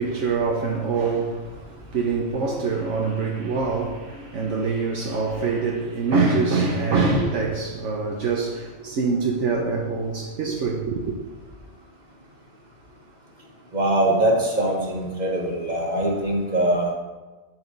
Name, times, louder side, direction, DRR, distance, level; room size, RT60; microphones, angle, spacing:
voice 1, 0.0-11.2, right 4 dB, 70° right, 1.2 m, -25 dB
voice 2, 13.7-16.9, right 1 dB, 35° right, 1.8 m, -22 dB
9.9 x 7.0 x 4.0 m
omnidirectional pair, 1.3 m